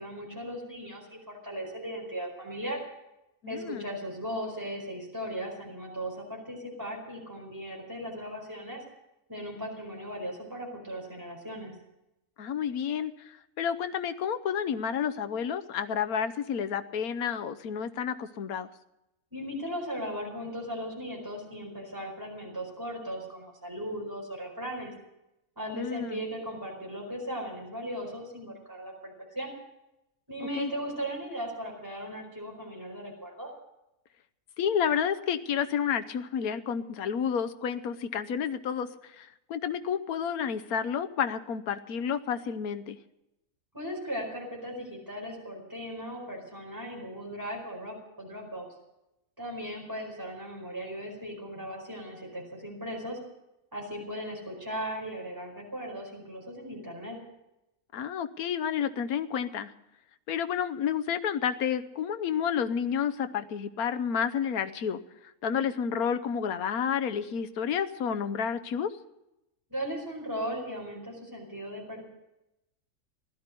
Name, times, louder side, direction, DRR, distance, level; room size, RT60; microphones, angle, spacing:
voice 1, 0.0-2.8 3.5-8.8 9.3-11.7 19.3-24.9 25.6-29.5 30.3-33.5 43.7-48.7 49.4-53.2 53.7-57.2 69.7-72.0, equal, 15° right, -1 dB, 4.7 m, -37 dB
voice 2, 3.4-3.9 12.4-18.7 25.7-26.2 30.5-30.7 34.6-43.0 57.9-59.7 60.3-68.9, left 7 dB, 80° left, 10 dB, 1.3 m, -30 dB
15.5 x 12.0 x 6.7 m, 0.90 s
omnidirectional pair, 1.5 m